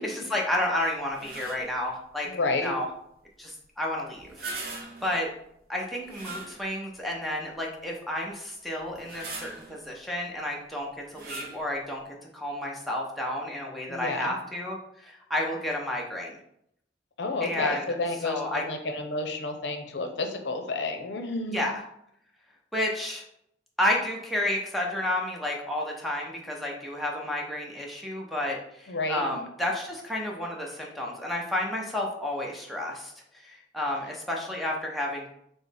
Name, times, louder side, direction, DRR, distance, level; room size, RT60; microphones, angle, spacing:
voice 1, 0.0-2.3 2.6-2.9 3.4-4.3 4.6-5.3 5.7-12.0 12.3-16.4 17.4-17.9 18.2-18.6 21.5-21.8 22.7-23.2 23.8-35.3, left 1 dB, ahead, -1 dB, 0.6 m, -31 dB
sound 1, 1.1-1.8 4.2-5.2 6.0-7.0 7.5-7.6 8.8-9.8 11.1-11.7, right 3 dB, 55° right, 0.8 m, -40 dB
voice 2, 2.2-2.7 13.9-14.3 17.2-21.6 28.9-29.4, left 3 dB, 80° left, 6 dB, 0.6 m, -30 dB
5.9 x 2.0 x 3.4 m, 0.75 s
head